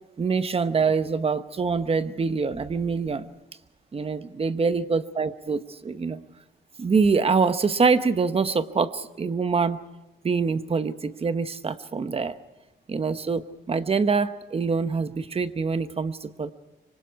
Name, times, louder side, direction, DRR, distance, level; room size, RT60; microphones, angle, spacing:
voice 1, 0.2-3.3 3.9-6.2 6.8-9.8 10.2-12.4 12.9-16.5, right 5 dB, 30° right, 12 dB, 1.0 m, -25 dB
25.5 x 25.0 x 4.7 m, 1.0 s
cardioid pair, 125°, 19 cm